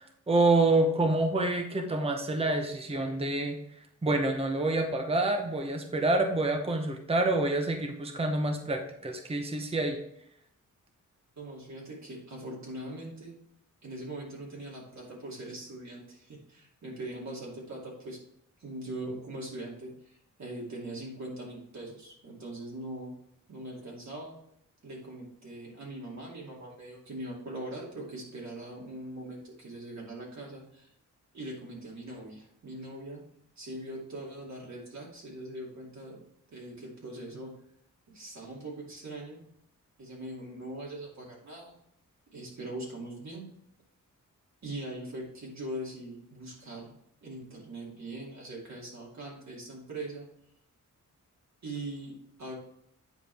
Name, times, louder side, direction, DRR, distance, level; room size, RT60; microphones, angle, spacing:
voice 1, 0.3-3.6 4.0-10.0, right 2 dB, 20° right, 4 dB, 0.8 m, -27 dB
voice 2, 11.4-13.3 13.8-18.2 18.6-23.1 23.5-24.3 24.8-30.9 31.3-33.2 33.6-36.2 36.5-37.5 38.1-39.5 40.0-41.8 42.3-43.5 44.6-46.9 47.2-50.3 51.6-52.5, right 1 dB, 55° right, -4 dB, 2.7 m, -41 dB
9.2 x 5.0 x 3.4 m, 0.74 s
wide cardioid pair, 120°, 32 cm